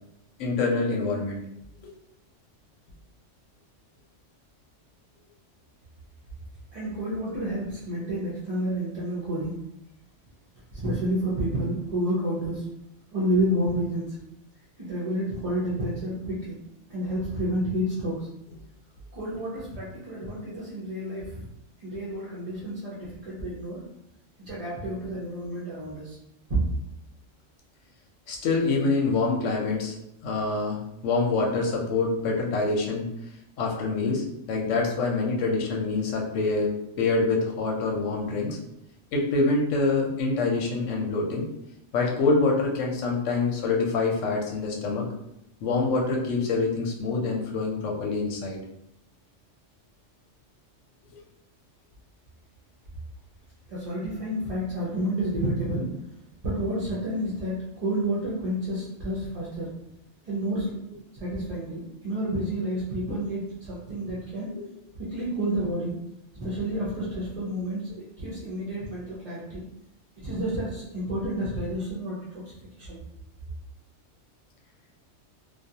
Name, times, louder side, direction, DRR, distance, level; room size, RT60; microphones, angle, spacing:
voice 1, 0.4-1.4 28.3-30.0 30.2-33.1 33.6-38.6 39.1-41.5 41.9-45.1 45.6-48.6 64.5-64.6, left 3 dB, 80° left, 0 dB, 1.0 m, -26 dB
voice 2, 6.7-9.6 10.7-12.7 13.1-14.2 14.8-16.6 16.9-18.3 19.1-21.5 21.8-23.9 24.4-26.2 26.5-26.6 53.7-55.9 56.4-59.7 60.2-60.8 61.1-64.5 65.0-65.9 66.4-69.6 70.2-73.0, right 1 dB, 45° right, -8 dB, 0.5 m, -30 dB
2.3 x 2.3 x 2.7 m, 0.83 s
omnidirectional pair, 1.3 m